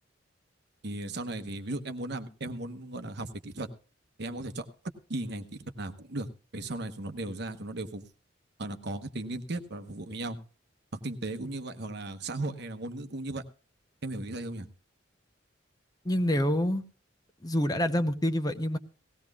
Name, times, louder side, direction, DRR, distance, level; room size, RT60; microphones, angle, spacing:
voice 1, 0.8-3.7 4.2-4.7 5.1-6.3 6.5-8.1 8.6-10.4 10.9-13.4 14.0-14.7, right 2 dB, 55° right, 8 dB, 1.0 m, -36 dB
voice 2, 16.0-16.8 17.4-18.8, equal, 20° left, 9 dB, 0.7 m, -27 dB
18.5 x 16.0 x 2.4 m, 0.37 s
head